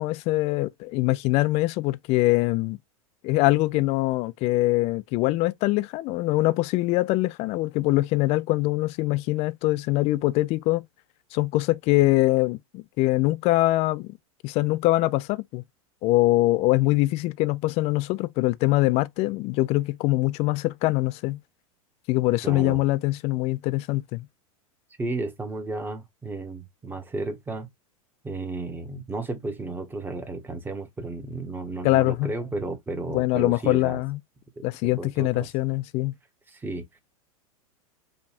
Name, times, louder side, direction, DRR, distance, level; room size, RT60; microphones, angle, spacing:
voice 1, 0.0-2.8 3.2-10.8 11.3-14.1 14.4-15.6 16.0-21.4 22.1-24.3 31.8-32.3 33.1-34.2 34.6-36.1, left 19 dB, 35° left, 0.4 m, -23 dB
voice 2, 22.4-22.8 25.0-27.7 28.2-34.0 34.6-35.5 36.5-36.9, right 2 dB, 10° right, 0.9 m, -33 dB
5.5 x 2.3 x 2.7 m
hypercardioid pair, 95°, 18 cm